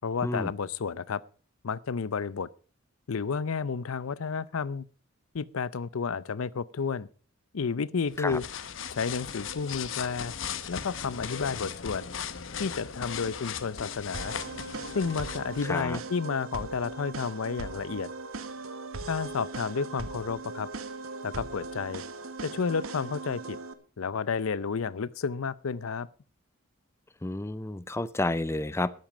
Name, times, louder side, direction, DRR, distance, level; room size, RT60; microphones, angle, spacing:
voice 1, 0.0-1.2 1.6-2.5 3.1-4.8 5.3-7.1 7.5-8.4 8.9-10.3 10.7-12.0 12.6-14.3 14.9-18.1 19.1-20.7 21.2-22.0 22.4-23.6 24.0-26.1, left 5 dB, 85° left, 0.6 m, -31 dB
sound 1, 8.1-15.8, left 7 dB, 65° left, 0.9 m, -38 dB
sound 2, 14.1-23.7, right 3 dB, 80° right, 1.1 m, -39 dB
voice 2, 15.7-16.0 27.2-28.9, left 2 dB, 15° left, 0.5 m, -30 dB
12.5 x 10.5 x 5.0 m
head